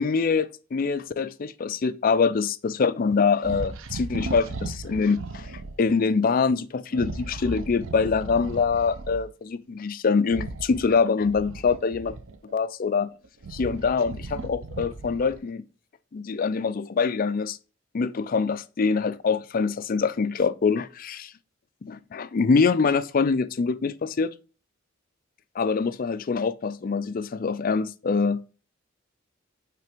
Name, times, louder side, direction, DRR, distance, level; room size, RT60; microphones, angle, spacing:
voice 1, 0.0-5.5 5.8-12.2 12.5-13.1 13.5-15.6 16.1-17.6 17.9-21.3 21.8-24.3 25.6-28.6, left 5 dB, 45° left, 0.4 m, -24 dB
sound 1, 3.4-5.8 6.9-9.3 10.2-12.5 13.1-15.5, right 3 dB, 90° right, 0.6 m, -36 dB
5.7 x 3.4 x 5.0 m
head